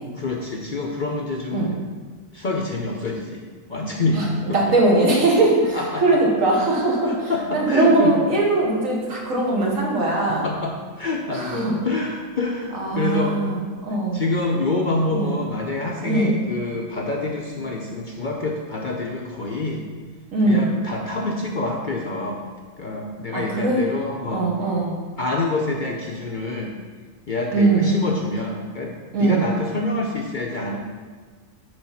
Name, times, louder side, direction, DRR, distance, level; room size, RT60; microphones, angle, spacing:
voice 1, 0.1-1.8 2.3-3.4 3.7-4.6 5.7-6.2 7.0-8.1 10.2-13.4 14.1-19.8 20.5-22.5 22.8-24.5 25.2-26.8 27.3-30.8, left 2 dB, 50° left, 0 dB, 0.6 m, -26 dB
voice 2, 4.5-10.5 11.3-11.7 12.7-14.2 15.1-15.4 16.1-16.4 20.3-20.7 23.3-23.8 24.3-25.0 27.5-28.0 29.1-29.5, right 2 dB, 75° right, -2 dB, 1.7 m, -20 dB
7.8 x 3.5 x 5.7 m, 1.5 s
omnidirectional pair, 1.4 m